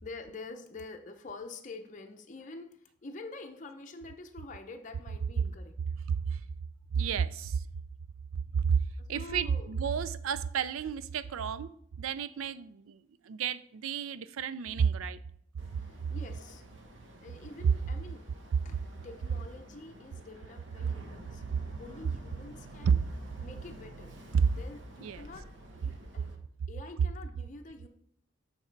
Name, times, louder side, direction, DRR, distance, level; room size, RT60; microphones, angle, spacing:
voice 1, 0.0-5.9 9.0-9.8 15.8-16.7 17.2-18.2 18.6-23.0 23.4-24.1 24.5-25.5 25.7-26.3 26.7-27.9, left 3 dB, 35° left, 0.6 m, -47 dB
voice 2, 6.1-6.4 6.9-7.6 8.5-8.8 9.1-11.7 12.0-13.0 13.3-15.2 22.8-23.0 24.3-24.5 25.0-25.2, right 6 dB, 85° right, 0.4 m, -30 dB
Boat Water vehicle, 15.6-26.4, right 1 dB, 60° right, 1.0 m, -50 dB
8.0 x 4.2 x 4.5 m
head